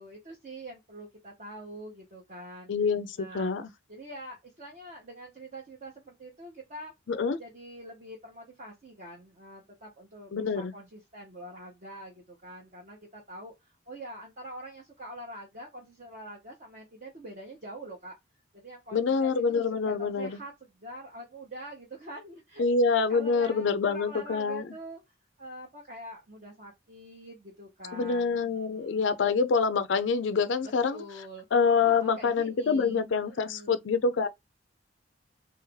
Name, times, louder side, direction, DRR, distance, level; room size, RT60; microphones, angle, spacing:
voice 1, 0.0-2.7 3.2-3.5 3.9-6.9 7.4-18.2 18.5-29.2 30.9-31.5 31.8-33.8, right 1 dB, 40° right, 0.9 m, -45 dB
voice 2, 2.7-3.7 7.1-7.4 10.3-10.7 18.9-20.4 22.6-24.6 27.9-31.0 31.5-34.3, left 5 dB, 65° left, 0.4 m, -26 dB
3.2 x 3.0 x 3.4 m
head